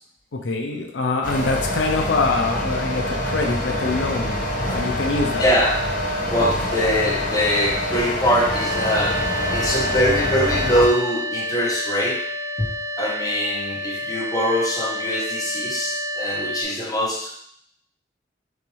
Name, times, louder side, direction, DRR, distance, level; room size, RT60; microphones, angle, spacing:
voice 1, 0.3-4.5 4.7-5.5, left 3 dB, 90° left, 3 dB, 0.6 m, -24 dB
sound 1, 1.2-10.9, left 1 dB, 50° left, 0.8 m, -25 dB
voice 2, 5.3-5.8 6.2-9.2 9.5-12.2 12.6-12.7 13.0-17.3, equal, 20° left, -2 dB, 1.0 m, -23 dB
sound 2, 8.5-16.6, equal, 50° right, 1.5 m, -29 dB
6.3 x 2.6 x 3.1 m, 0.67 s
head